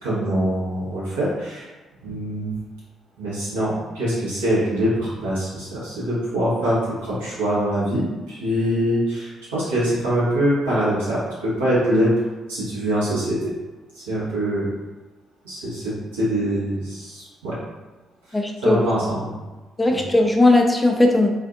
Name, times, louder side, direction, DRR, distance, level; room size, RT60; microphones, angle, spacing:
voice 1, 0.0-1.7 2.0-2.6 3.2-12.1 12.5-13.5 13.9-14.7 15.4-17.6 18.3-19.3 19.9-20.0, equal, 80° right, -9 dB, 1.0 m, -24 dB
voice 2, 18.3-18.8 19.8-21.3, left 2 dB, 15° left, 2 dB, 0.4 m, -17 dB
2.5 x 2.5 x 2.3 m, 1.2 s
figure-of-eight pair, 40°, 0 cm